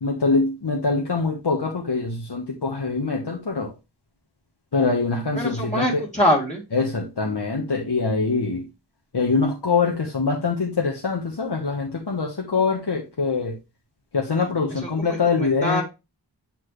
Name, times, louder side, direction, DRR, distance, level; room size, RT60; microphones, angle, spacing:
voice 1, 0.0-3.7 4.7-6.0 6.7-8.7 9.1-13.6 14.1-15.8, left 4 dB, 65° left, -1 dB, 1.3 m, -24 dB
voice 2, 5.4-6.6 14.8-15.8, equal, 15° left, -3 dB, 1.8 m, -24 dB
7.8 x 4.3 x 3.2 m, 0.25 s
wide cardioid pair, 45°, 43 cm